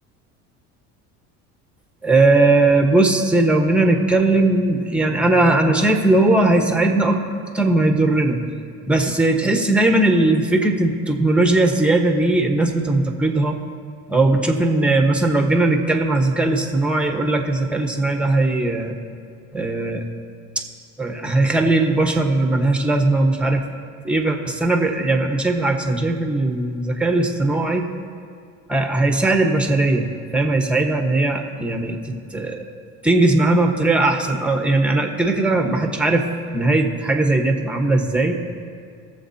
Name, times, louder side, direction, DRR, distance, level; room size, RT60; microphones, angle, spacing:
voice 1, 2.0-7.2 7.5-8.4 8.9-13.6 14.1-18.9 19.5-20.0 20.5-20.6 21.0-23.7 24.0-27.8 28.7-32.6 33.0-36.2 36.5-38.4, right 2 dB, 5° right, 3 dB, 1.3 m, -19 dB
22.5 x 7.4 x 2.8 m, 2.1 s
supercardioid pair, 100°, 37 cm